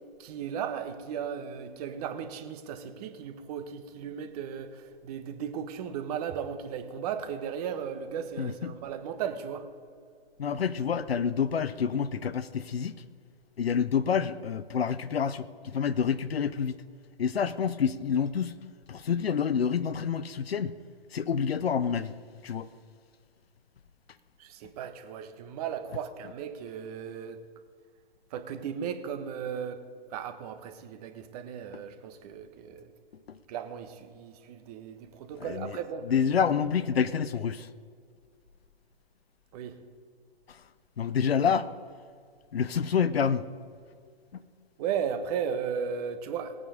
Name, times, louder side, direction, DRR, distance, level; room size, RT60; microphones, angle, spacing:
voice 1, 0.2-9.7 24.4-27.4 28.3-29.8 30.1-32.9 33.5-36.1 36.4-36.5 39.5-39.8 44.8-46.6, right 7 dB, 40° right, 1.2 m, -36 dB
voice 2, 8.4-8.8 10.4-12.9 13.6-16.8 17.2-18.6 18.9-20.8 21.1-22.1 22.4-22.7 33.3-33.4 35.4-35.7 36.1-37.7 41.0-41.7 42.5-43.5, left 7 dB, 80° left, 0.7 m, -28 dB
18.0 x 8.9 x 5.0 m
figure-of-eight pair, 120°, 30 cm